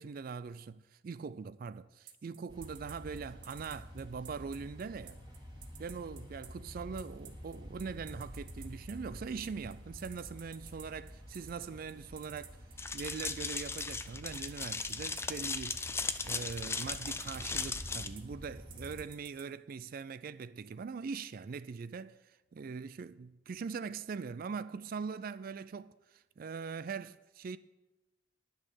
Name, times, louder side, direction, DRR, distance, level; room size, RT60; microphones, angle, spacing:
voice 1, 0.0-5.2 5.8-12.6 12.9-15.9 16.2-27.6, right 5 dB, 50° right, 0.3 m, -42 dB
sound 1, 2.1-19.4, right 10 dB, 65° right, 1.2 m, -52 dB
sound 2, 2.5-19.0, equal, 25° right, 2.5 m, -49 dB
sound 3, 12.8-18.1, left 4 dB, 15° left, 0.4 m, -37 dB
10.5 x 6.4 x 8.3 m
head